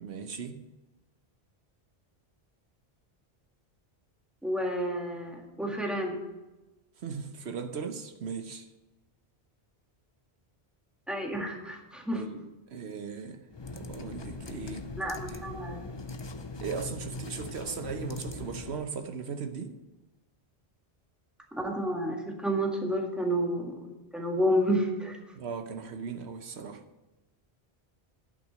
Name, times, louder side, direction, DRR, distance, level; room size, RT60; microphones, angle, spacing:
voice 1, 0.0-0.6 7.0-8.7 12.1-13.4 13.7-14.9 15.2-15.4 16.6-19.8 25.4-26.8, right 5 dB, 85° right, 6 dB, 1.2 m, -38 dB
voice 2, 4.4-6.2 11.1-12.2 15.0-15.9 21.5-25.2, equal, ahead, 0 dB, 1.7 m, -30 dB
sound 1, 13.5-18.9, left 3 dB, 30° left, 0.5 m, -40 dB
11.5 x 5.9 x 7.6 m, 1.1 s
omnidirectional pair, 1.1 m